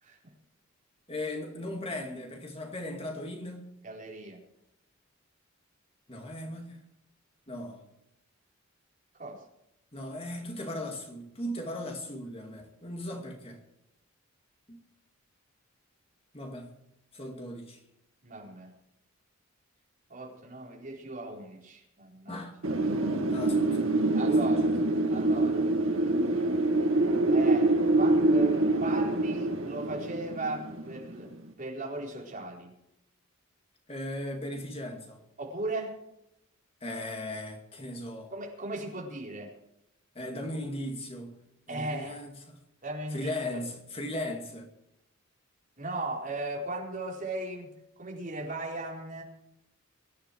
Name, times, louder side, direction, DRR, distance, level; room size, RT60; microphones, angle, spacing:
voice 1, 1.1-3.7 6.1-6.8 7.5-7.8 9.9-13.6 14.7-14.8 16.3-16.8 17.1-17.8 22.3-22.5 23.3-23.9 24.5-24.8 33.9-35.2 36.8-38.3 40.1-42.6 43.1-44.7, left 1 dB, 25° left, 2.4 m, -38 dB
voice 2, 3.8-4.4 9.1-9.4 18.2-18.7 20.1-22.4 24.1-24.8 25.1-26.6 27.3-32.7 35.4-36.0 38.3-39.6 41.7-42.2 42.8-43.6 45.8-47.7 48.0-49.2, right 2 dB, 40° right, 4.4 m, -37 dB
Wind, 22.6-31.3, right 2 dB, 70° right, 2.0 m, -25 dB
24.0 x 11.0 x 4.7 m
head